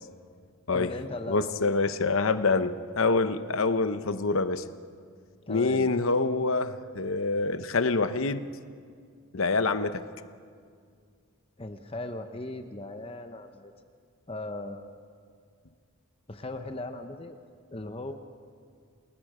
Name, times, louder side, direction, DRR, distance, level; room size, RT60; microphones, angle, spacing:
voice 1, 0.7-1.5 3.7-3.8 5.5-5.9 11.6-13.7 14.3-14.8 16.3-17.4 17.7-18.1, left 2 dB, 25° left, 7 dB, 0.9 m, -38 dB
voice 2, 1.3-4.6 5.5-8.5 9.3-10.0, left 3 dB, 65° left, 11 dB, 0.9 m, -26 dB
29.0 x 20.0 x 5.0 m, 2.1 s
head